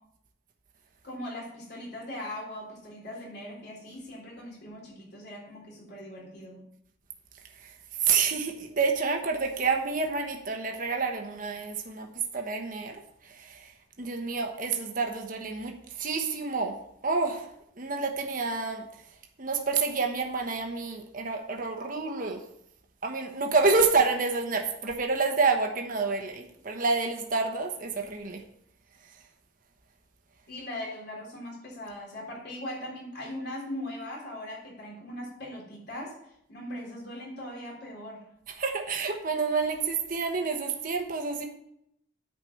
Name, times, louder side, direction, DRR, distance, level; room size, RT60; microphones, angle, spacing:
voice 1, 1.0-6.6 30.5-38.3, left 1 dB, 55° left, -2 dB, 3.6 m, -40 dB
voice 2, 8.0-12.1 12.3-13.7 14.0-16.7 17.0-17.5 17.8-18.9 19.4-22.4 23.0-28.4 38.6-41.5, right 4 dB, 45° right, 3 dB, 1.2 m, -28 dB
9.3 x 5.1 x 7.1 m, 0.75 s
head